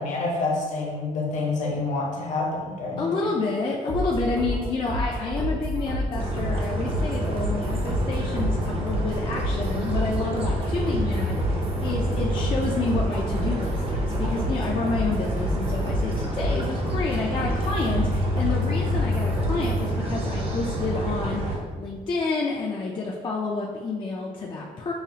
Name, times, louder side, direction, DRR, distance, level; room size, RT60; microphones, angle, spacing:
voice 1, 0.0-3.2, left 3 dB, 55° left, -2 dB, 0.9 m, -27 dB
voice 2, 3.0-24.9, left 3 dB, 30° left, -3 dB, 0.4 m, -29 dB
sound 1, 3.9-19.8, equal, 75° right, 1.1 m, -29 dB
sound 2, 6.2-21.6, equal, 35° right, 0.6 m, -28 dB
5.5 x 2.4 x 2.7 m, 1.5 s
cardioid pair, 140°, 15 cm